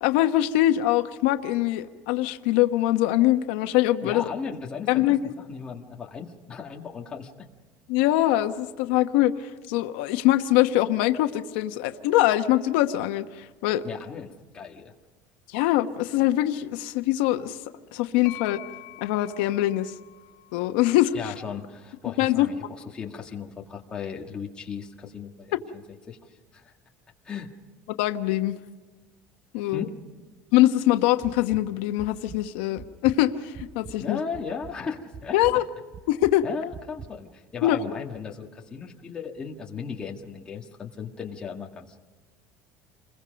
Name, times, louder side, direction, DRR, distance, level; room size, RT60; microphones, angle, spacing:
voice 1, 0.0-4.2 4.9-5.3 7.9-13.8 15.5-17.6 17.9-18.6 19.0-19.9 20.5-21.3 22.2-22.5 28.0-28.6 29.5-29.9 30.5-34.2 35.3-35.6 36.1-36.4 37.6-37.8, left 15 dB, 90° left, 8 dB, 1.1 m, -23 dB
voice 2, 4.0-7.3 13.8-14.9 21.1-25.8 26.1-26.7 27.3-27.5 29.6-29.9 34.0-35.4 36.4-42.0, left 6 dB, 15° left, 0 dB, 1.8 m, -36 dB
sound 1, 18.2-22.0, left 18 dB, 70° left, 2.6 m, -46 dB
sound 2, 31.2-31.6 32.0-32.4 32.8-34.0 34.3-34.8 35.1-35.5 35.9-36.3 36.7-37.1, right 6 dB, 25° right, 0.7 m, -42 dB
28.5 x 22.0 x 5.2 m, 1.3 s
cardioid pair, 175°, 5 cm